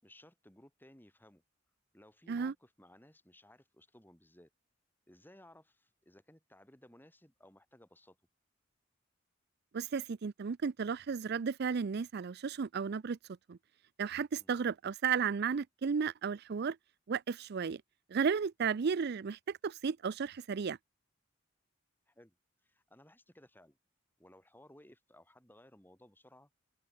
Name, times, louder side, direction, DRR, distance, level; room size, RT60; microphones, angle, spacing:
voice 1, 0.0-1.4 1.9-4.5 5.1-8.2 14.3-14.5 22.1-22.4 22.6-23.8 24.2-26.5, left 1 dB, 10° left, 5.0 m, -60 dB
voice 2, 9.7-13.2 13.5-13.6 14.0-16.8 17.1-17.8 18.1-20.8, right 6 dB, 55° right, 0.4 m, -34 dB
open air
head